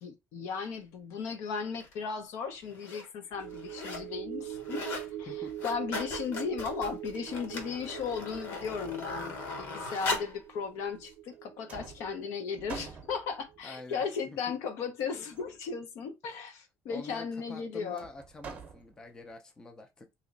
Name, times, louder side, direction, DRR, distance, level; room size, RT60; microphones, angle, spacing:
voice 1, 0.0-4.9 5.2-18.1, left 6 dB, 70° left, 0.8 m, -36 dB
sound 1, 1.8-1.9 2.6-3.1 3.4-4.1 4.4-5.1 5.4-10.4 11.1-11.2, left 3 dB, 55° left, 1.2 m, -38 dB
sound 2, 3.3-13.9 14.3-14.4, right 13 dB, 70° right, 0.4 m, -43 dB
sound 3, 6.8-6.9 7.1-8.2 9.0-10.0 11.0-11.4 11.7-13.6 15.3-15.8 18.0-19.3, right 5 dB, 30° right, 0.7 m, -48 dB
voice 2, 13.6-14.5 16.2-16.4 16.9-20.2, left 2 dB, 15° left, 0.5 m, -47 dB
3.0 x 2.8 x 3.8 m
cardioid pair, 170°, 5 cm